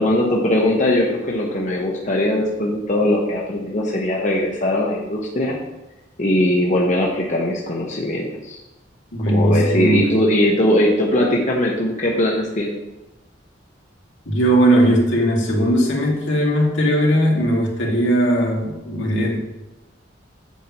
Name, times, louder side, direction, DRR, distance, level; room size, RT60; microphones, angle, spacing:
voice 1, 0.0-5.6 6.2-8.6 9.3-12.7, left 1 dB, 40° left, -2 dB, 1.0 m, -20 dB
voice 2, 9.1-10.1 14.3-19.4, right 1 dB, 75° left, -2 dB, 2.1 m, -18 dB
8.4 x 7.3 x 3.0 m, 0.98 s
head